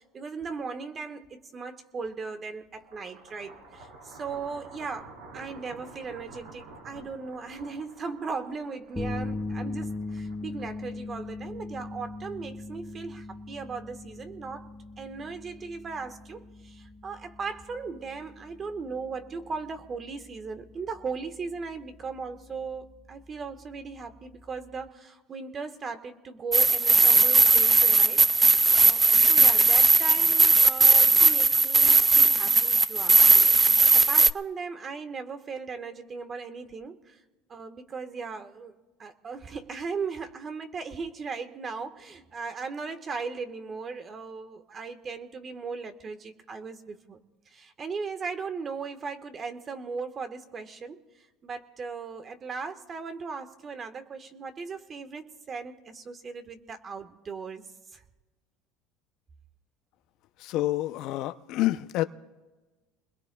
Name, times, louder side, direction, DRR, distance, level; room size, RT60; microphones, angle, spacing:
voice 1, 0.0-37.2 37.5-38.7 39.0-47.2 47.5-57.7 57.9-58.0, right 5 dB, 35° right, 1.5 m, -38 dB
sound 1, 2.7-11.0, right 3 dB, 85° right, 4.4 m, -49 dB
sound 2, 9.0-24.9, left 3 dB, 10° left, 0.7 m, -40 dB
sound 3, 26.5-34.3, right 3 dB, 20° right, 0.4 m, -18 dB
voice 2, 60.4-62.0, left 15 dB, 65° left, 0.6 m, -28 dB
29.0 x 21.0 x 2.4 m
supercardioid pair, 100°, 0 cm